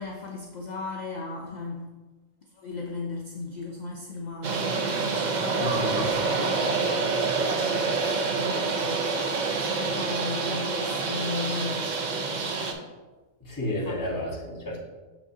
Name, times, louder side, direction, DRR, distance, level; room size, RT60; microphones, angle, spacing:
voice 1, 0.0-1.9 2.4-5.8 7.5-9.2 9.7-11.8 13.8-14.3, left 3 dB, 50° left, 0 dB, 0.5 m, -36 dB
sound 1, 4.4-12.7, right 4 dB, 50° right, 0.5 m, -27 dB
voice 2, 5.6-6.1 13.4-14.8, left 1 dB, 15° left, -4 dB, 1.3 m, -31 dB
6.4 x 5.8 x 2.7 m, 1.2 s
omnidirectional pair, 1.4 m